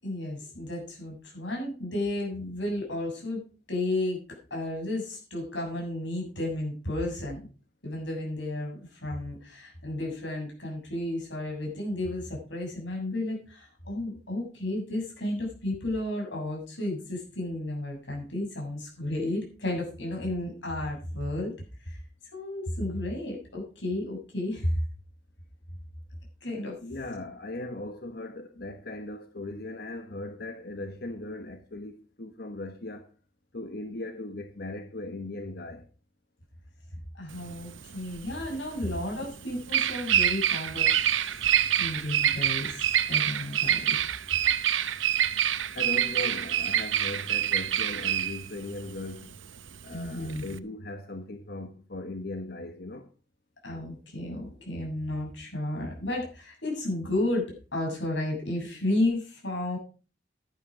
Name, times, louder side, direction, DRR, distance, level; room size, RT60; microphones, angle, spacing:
voice 1, 0.0-3.4 3.7-4.2 4.5-7.4 7.8-21.5 21.8-22.0 22.3-24.8 26.4-26.8 37.1-40.9 41.8-44.0 49.9-50.5 53.6-59.8, left 1 dB, 75° left, 7.1 m, -32 dB
voice 2, 26.8-33.1 33.5-35.9 45.7-49.4 49.8-53.1, left 2 dB, 55° left, 1.1 m, -38 dB
Bird vocalization bird call bird song, 37.3-50.6, right 10 dB, 85° right, 0.8 m, -26 dB
11.5 x 10.5 x 5.0 m
head